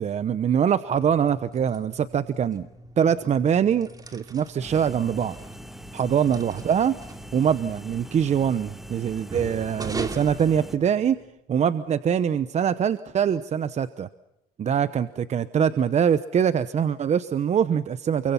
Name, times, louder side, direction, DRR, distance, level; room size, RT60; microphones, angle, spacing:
voice 1, 0.0-2.7 3.0-5.4 5.9-7.0 7.3-11.2 11.5-14.1 14.6-18.3, right 8 dB, 40° right, 14 dB, 0.9 m, -23 dB
sound 1, 0.9-11.3, right 2 dB, 20° right, 2.5 m, -41 dB
sound 2, 4.6-10.8, equal, ahead, 1.9 m, -43 dB
29.0 x 23.5 x 5.7 m, 0.86 s
cardioid pair, 110°, 17 cm